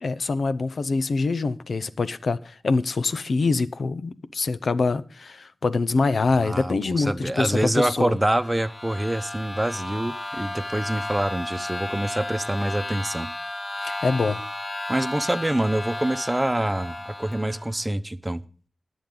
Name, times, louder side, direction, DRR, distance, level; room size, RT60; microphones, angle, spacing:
voice 1, 0.0-8.1 13.8-14.4, left 3 dB, 80° left, 0.7 m, -25 dB
voice 2, 6.4-13.3 14.9-18.4, right 1 dB, 20° right, 0.9 m, -26 dB
sound 1, 8.1-17.8, left 2 dB, 60° left, 2.3 m, -34 dB
21.5 x 7.3 x 3.9 m
wide cardioid pair, 60°, 0 cm